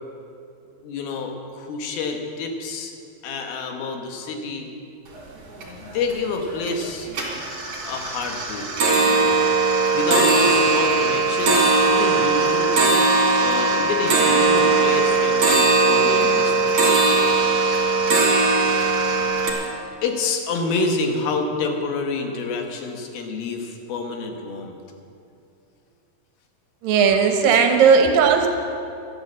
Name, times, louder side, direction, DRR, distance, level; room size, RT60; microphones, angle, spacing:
voice 1, 0.8-2.9 3.2-4.7 5.6-7.1 7.8-8.7 9.0-9.3 9.9-12.7 13.3-16.8 20.0-24.8, left 3 dB, 85° left, 4 dB, 3.1 m, -28 dB
sound 1, 5.1-5.2 5.5-6.1 6.5-6.8 7.1-19.5, right 3 dB, 50° right, 3.6 m, -19 dB
voice 2, 26.8-28.5, right 6 dB, 75° right, 4 dB, 2.7 m, -16 dB
12.5 x 11.0 x 7.5 m, 2.5 s
omnidirectional pair, 4.2 m